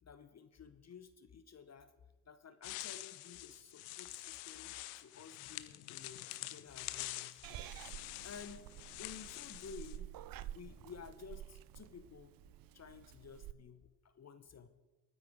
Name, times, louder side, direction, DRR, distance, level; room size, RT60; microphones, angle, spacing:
voice 1, 0.0-1.9 2.3-7.7 8.2-8.7 9.0-10.1 10.5-12.3 12.7-14.7, left 6 dB, 35° left, 10 dB, 1.0 m, -53 dB
sound 1, 2.6-10.0, left 17 dB, 75° left, 0.7 m, -47 dB
Purr / Meow, 7.4-13.5, right 13 dB, 45° right, 0.6 m, -50 dB
28.0 x 9.6 x 3.6 m, 1.2 s
figure-of-eight pair, 40°, 48 cm